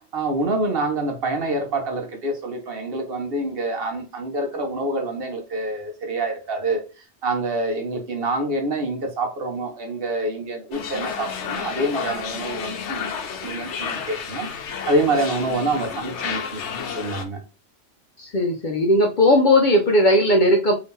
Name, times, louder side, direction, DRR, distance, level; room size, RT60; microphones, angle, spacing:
voice 1, 0.1-6.8 7.2-16.6 16.9-17.4, right 2 dB, 55° right, 4 dB, 0.9 m, -26 dB
sound 1, 10.7-17.2, left 6 dB, 75° left, 0.9 m, -31 dB
voice 2, 18.2-20.7, left 1 dB, 55° left, 2 dB, 0.6 m, -17 dB
2.8 x 2.7 x 3.5 m, 0.33 s
omnidirectional pair, 1.2 m